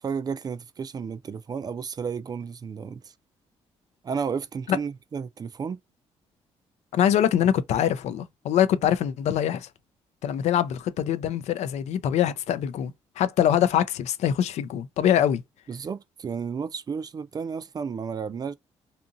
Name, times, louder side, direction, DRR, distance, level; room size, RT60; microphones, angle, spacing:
voice 1, 0.0-3.1 4.0-5.8 15.7-18.5, right 6 dB, 35° right, 0.3 m, -32 dB
voice 2, 6.9-9.7 10.2-15.4, left 10 dB, 75° left, 0.4 m, -24 dB
2.7 x 2.6 x 2.4 m
cardioid pair, 95°, 11 cm